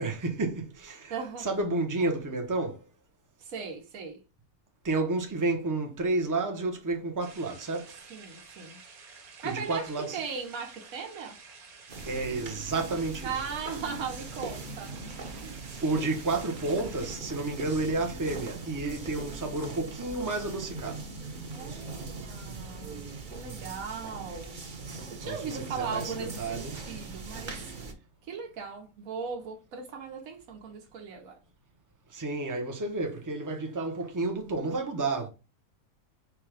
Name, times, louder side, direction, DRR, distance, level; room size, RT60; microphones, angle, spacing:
voice 1, 0.0-2.9 4.8-8.0 9.4-10.2 12.1-13.3 15.3-15.5 15.8-21.1 25.2-26.8 32.1-35.3, right 2 dB, 20° right, 0.6 m, -31 dB
voice 2, 1.1-1.5 3.4-4.2 8.1-8.8 9.4-11.4 13.2-15.1 15.4-15.6 18.9-19.6 21.5-23.0 23.3-24.6 25.1-27.7 28.3-31.4, right 5 dB, 70° right, 1.3 m, -38 dB
sound 1, 7.2-17.2, right 5 dB, 90° right, 1.5 m, -51 dB
sound 2, 11.9-27.9, right 3 dB, 40° right, 0.9 m, -40 dB
4.6 x 2.3 x 4.7 m
omnidirectional pair, 1.5 m